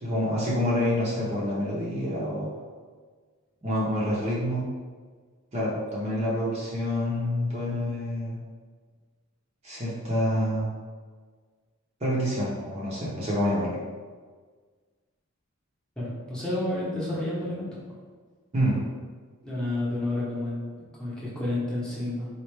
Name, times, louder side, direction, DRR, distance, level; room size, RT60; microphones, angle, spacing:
voice 1, 0.0-2.5 3.6-4.6 5.5-8.4 9.6-10.7 12.0-13.8 18.5-18.8, equal, 30° right, -6 dB, 0.7 m, -27 dB
voice 2, 16.0-17.8 19.4-22.3, left 1 dB, 5° left, -9 dB, 0.9 m, -30 dB
4.3 x 2.4 x 3.2 m, 1.5 s
head